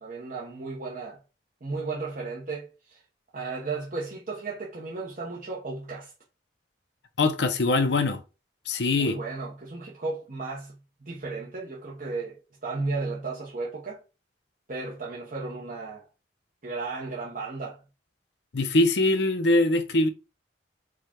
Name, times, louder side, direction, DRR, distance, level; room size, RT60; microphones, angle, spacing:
voice 1, 0.0-1.2 1.6-3.0 3.3-6.1 9.0-10.8 11.0-14.0 14.7-16.0 16.6-17.8, right 3 dB, 50° right, 0.9 m, -34 dB
voice 2, 7.2-8.2 8.7-9.2 18.5-20.1, left 2 dB, 70° left, 0.6 m, -22 dB
4.8 x 2.3 x 4.4 m
head